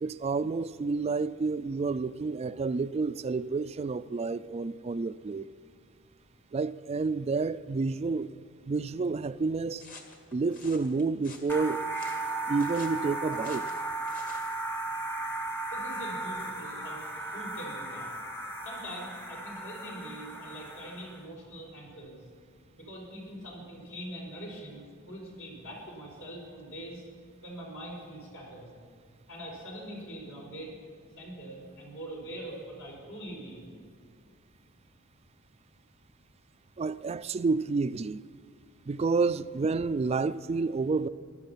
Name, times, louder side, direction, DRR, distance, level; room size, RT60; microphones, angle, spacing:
voice 1, 0.0-5.5 6.5-8.3 8.6-9.8 10.3-11.8 12.5-13.7 36.8-38.2 38.9-41.1, right 4 dB, 30° right, 15 dB, 0.3 m, -29 dB
sound 1, 9.8-14.5, left 4 dB, 40° left, 1.7 m, -50 dB
sound 2, 11.5-21.2, right 2 dB, 10° left, 0.9 m, -36 dB
voice 2, 15.7-18.1 18.6-22.2 22.7-27.0 27.4-28.7 29.3-30.8 31.1-33.7, right 1 dB, 70° left, -2 dB, 4.8 m, -43 dB
16.0 x 12.5 x 5.7 m, 2.1 s
head